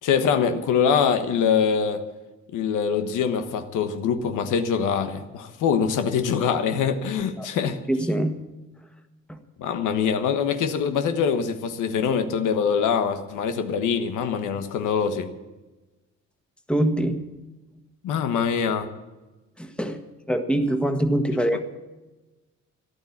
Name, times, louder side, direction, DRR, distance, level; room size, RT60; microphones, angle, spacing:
voice 1, 0.0-2.0 2.5-7.8 9.6-15.3 18.0-18.9, left 7 dB, 85° left, 1.3 m, -24 dB
voice 2, 7.9-8.4 9.3-9.4 16.7-17.2 19.6-20.0 20.3-21.7, right 1 dB, 5° left, 1.6 m, -24 dB
14.0 x 11.5 x 7.3 m
cardioid pair, 90°, 30 cm